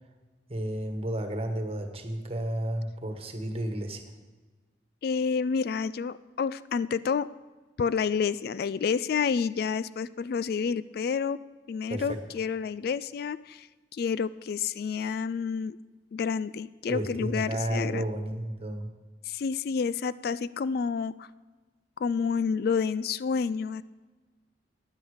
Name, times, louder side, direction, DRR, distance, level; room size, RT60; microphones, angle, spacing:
voice 1, 0.5-4.0 11.9-12.2 16.9-18.9, right 1 dB, 35° right, 6 dB, 1.5 m, -32 dB
voice 2, 5.0-7.3 7.8-15.8 16.1-18.0 19.2-21.3 22.0-23.8, left 6 dB, 55° left, 17 dB, 0.3 m, -29 dB
15.0 x 10.5 x 5.0 m, 1.3 s
head